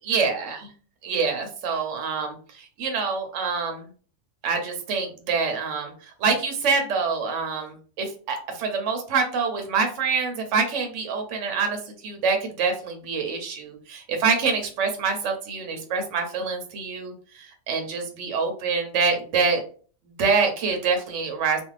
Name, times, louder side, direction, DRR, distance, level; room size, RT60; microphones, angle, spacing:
voice 1, 0.1-0.6 1.0-3.9 4.4-5.9 6.2-19.6 20.2-21.6, right 5 dB, 70° right, 4 dB, 0.9 m, -26 dB
2.5 x 2.3 x 3.1 m, 0.40 s
omnidirectional pair, 1.4 m